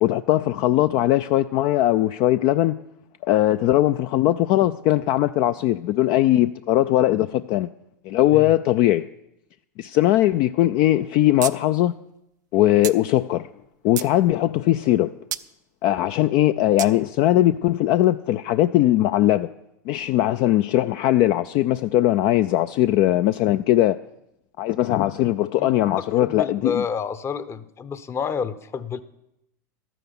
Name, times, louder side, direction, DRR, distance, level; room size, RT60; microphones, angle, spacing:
voice 1, 0.0-2.8 3.2-7.7 8.1-9.1 9.8-12.0 12.5-13.5 13.8-15.1 15.8-19.5 19.9-24.0 24.6-26.8, left 14 dB, 50° left, 0.4 m, -20 dB
sound 1, 11.4-11.5 11.8-11.9 12.8-13.0 13.6-14.1 15.3-15.5 16.8-16.9, right 12 dB, 80° right, 0.5 m, -29 dB
voice 2, 26.2-29.0, left 6 dB, 25° left, 0.7 m, -29 dB
12.5 x 9.1 x 6.0 m
hypercardioid pair, 100°, 10 cm